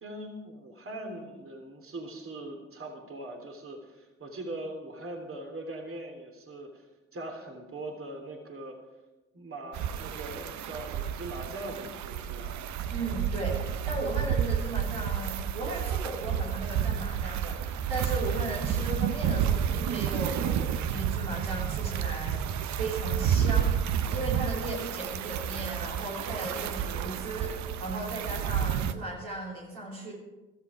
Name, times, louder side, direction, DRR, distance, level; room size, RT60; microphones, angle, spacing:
voice 1, 0.0-6.8 7.1-8.8 9.3-12.6, right 1 dB, 45° right, 3 dB, 3.1 m, -41 dB
sound 1, 9.7-28.9, right 8 dB, 65° right, 0.8 m, -30 dB
voice 2, 12.9-30.1, right 2 dB, 90° right, -5 dB, 3.1 m, -36 dB
16.0 x 13.5 x 5.0 m, 1.1 s
hypercardioid pair, 40°, 31 cm